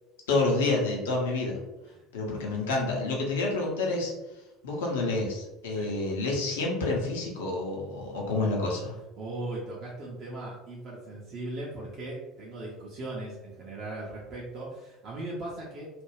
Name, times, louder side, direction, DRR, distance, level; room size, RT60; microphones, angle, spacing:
voice 1, 0.3-1.6 2.1-4.1 4.6-9.0, left 2 dB, 65° left, -1 dB, 0.6 m, -28 dB
voice 2, 9.2-15.9, right 2 dB, 40° right, -4 dB, 0.6 m, -38 dB
2.4 x 2.2 x 3.3 m, 0.99 s
figure-of-eight pair, 65°, 0 cm